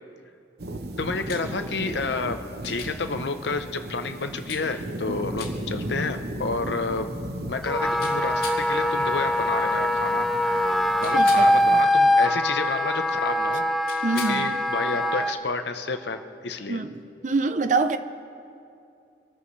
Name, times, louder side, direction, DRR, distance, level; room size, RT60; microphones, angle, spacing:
sound 1, 0.6-11.8, right 1 dB, 60° right, 0.9 m, -36 dB
voice 1, 1.0-2.4 2.6-7.1 7.5-10.3 11.0-13.6 14.3-16.8, left 4 dB, 70° left, 0.9 m, -30 dB
sound 2, 1.3-1.4 2.6-2.9 4.5-4.6 5.4-5.5 8.0-8.6 11.0-11.5 13.8-14.4 16.6-16.7, left 5 dB, 55° left, 2.8 m, -37 dB
Wind instrument woodwind instrument, 7.7-15.4, left 1 dB, ahead, 0.5 m, -23 dB
voice 2, 11.1-11.8 14.0-14.5 16.7-18.0, right 3 dB, 40° right, 0.6 m, -26 dB
25.5 x 14.0 x 3.3 m
head